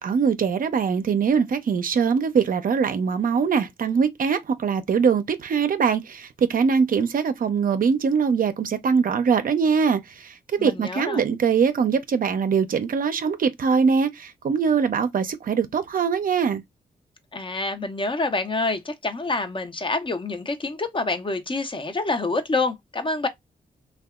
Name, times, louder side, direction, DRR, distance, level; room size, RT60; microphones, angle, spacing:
voice 1, 0.0-16.6, right 6 dB, 55° right, 0.5 m, -22 dB
voice 2, 10.6-11.2 17.3-23.3, left 3 dB, 30° left, 0.6 m, -27 dB
2.7 x 2.2 x 2.3 m
supercardioid pair, 45°, 17 cm